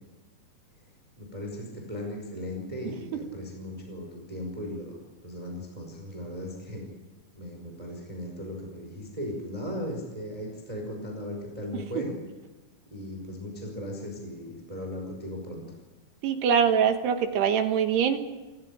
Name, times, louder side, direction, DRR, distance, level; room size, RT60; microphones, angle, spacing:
voice 1, 1.2-5.0 5.2-6.8 7.3-12.1 12.9-15.6, left 1 dB, 10° right, 1 dB, 4.7 m, -37 dB
voice 2, 16.2-18.2, right 7 dB, 70° right, 6 dB, 3.4 m, -23 dB
28.5 x 15.5 x 8.8 m, 1.2 s
omnidirectional pair, 5.2 m